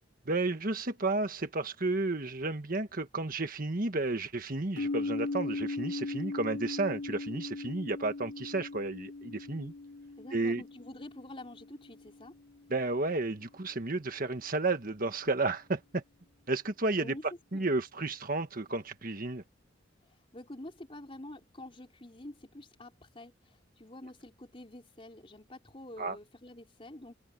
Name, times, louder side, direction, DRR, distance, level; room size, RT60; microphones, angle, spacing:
voice 1, 0.2-9.7 10.3-10.6 12.7-16.0 16.5-17.1 17.5-19.4 26.0-26.2, right 2 dB, 45° right, 1.5 m, -32 dB
sound 1, 4.8-12.6, left 3 dB, 65° left, 2.8 m, -38 dB
voice 2, 10.2-12.3 17.0-17.2 17.5-17.6 20.3-23.3 23.8-27.1, left 1 dB, 30° left, 4.0 m, -47 dB
head